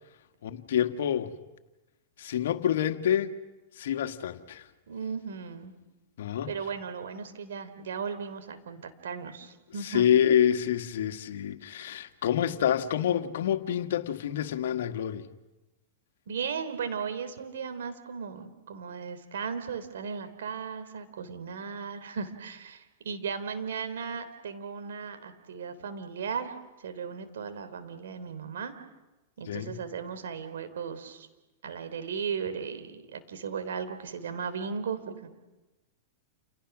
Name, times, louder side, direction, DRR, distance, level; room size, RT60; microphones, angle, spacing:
voice 1, 0.4-1.4 2.2-3.4 3.8-4.7 6.2-6.5 9.8-15.3 29.5-29.8, left 9 dB, 70° left, 1.7 m, -27 dB
voice 2, 4.9-5.7 6.5-10.0 16.3-26.5 26.8-28.7 29.4-31.3 31.6-35.3, right 6 dB, 75° right, 3.6 m, -36 dB
30.0 x 29.0 x 6.2 m
hypercardioid pair, 110°, 0 cm